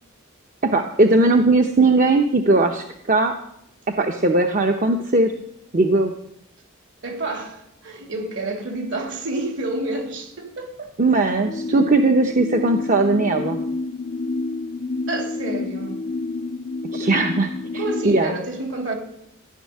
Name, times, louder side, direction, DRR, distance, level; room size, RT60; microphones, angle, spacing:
voice 1, 0.6-3.3 4.0-5.3 5.7-6.1 11.0-13.6 16.9-18.3, right 2 dB, 40° right, 0.9 m, -19 dB
voice 2, 7.0-10.9 11.3-11.4 15.1-16.0 17.8-18.9, right 2 dB, 60° right, 3.2 m, -29 dB
sound 1, 11.4-18.2, left 3 dB, 35° left, 0.5 m, -29 dB
15.0 x 6.4 x 9.7 m
head